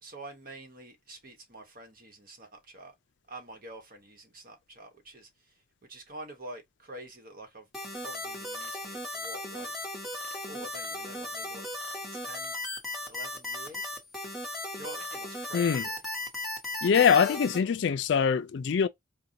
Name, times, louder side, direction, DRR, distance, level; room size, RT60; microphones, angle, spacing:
voice 1, 0.0-2.9 3.3-5.6 5.9-7.7 7.9-9.7 10.5-11.6 12.1-12.6 13.0-13.9 14.7-15.9, right 1 dB, 45° right, 1.0 m, -47 dB
sound 1, 7.7-17.6, left 2 dB, ahead, 1.0 m, -36 dB
voice 2, 15.5-15.9 16.8-18.9, left 7 dB, 65° left, 0.4 m, -23 dB
5.0 x 2.2 x 2.7 m
head